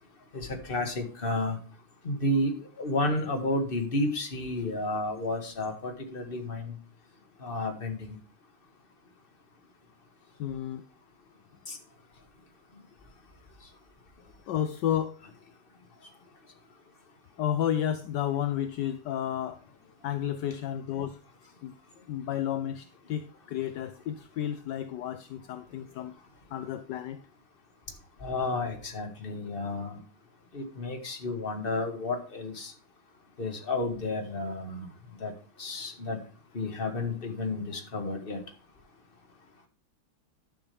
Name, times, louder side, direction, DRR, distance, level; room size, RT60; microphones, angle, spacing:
voice 1, 0.3-1.6 2.0-6.8 7.4-8.2 11.7-11.8 28.2-30.0 30.5-32.7 33.4-34.9 35.2-35.3 35.6-36.2 36.5-38.4, left 2 dB, 25° left, 4 dB, 1.8 m, -31 dB
voice 2, 10.4-10.8 14.5-15.2 17.4-19.6 20.0-21.2 21.6-21.7 22.1-26.1 26.5-27.2, left 10 dB, 70° left, 11 dB, 1.0 m, -31 dB
11.5 x 7.3 x 3.4 m, 0.39 s
omnidirectional pair, 2.4 m